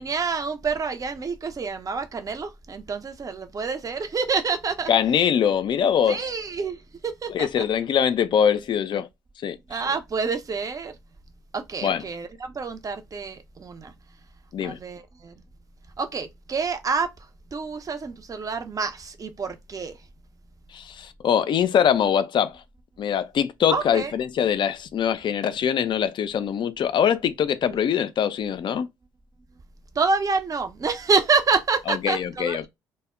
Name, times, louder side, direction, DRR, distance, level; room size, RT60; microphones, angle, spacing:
voice 1, 0.0-4.9 6.1-7.6 9.7-11.0 11.5-13.9 14.6-15.3 16.0-17.1 17.5-20.0 23.7-24.1 27.7-27.8 29.9-32.7, right 4 dB, 30° right, 0.6 m, -27 dB
voice 2, 4.9-6.2 7.3-9.1 9.4-9.8 11.8-12.0 14.5-14.8 20.7-22.6 23.0-28.9 31.9-32.7, left 8 dB, 45° left, 0.4 m, -23 dB
2.1 x 2.0 x 3.5 m
hypercardioid pair, 50°, 11 cm